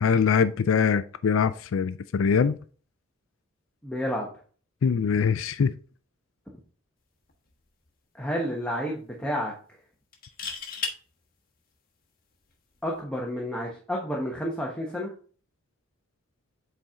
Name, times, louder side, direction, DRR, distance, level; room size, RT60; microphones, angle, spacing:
voice 1, 0.0-2.5 4.8-5.7, left 6 dB, 70° left, 0.4 m, -23 dB
voice 2, 3.8-4.3 8.2-9.5 12.8-15.1, equal, 5° left, 1.1 m, -30 dB
sound 1, 7.3-7.5 7.9-8.0 10.1-11.0 12.8-13.0, left 5 dB, 40° left, 1.2 m, -34 dB
7.9 x 4.4 x 3.6 m
head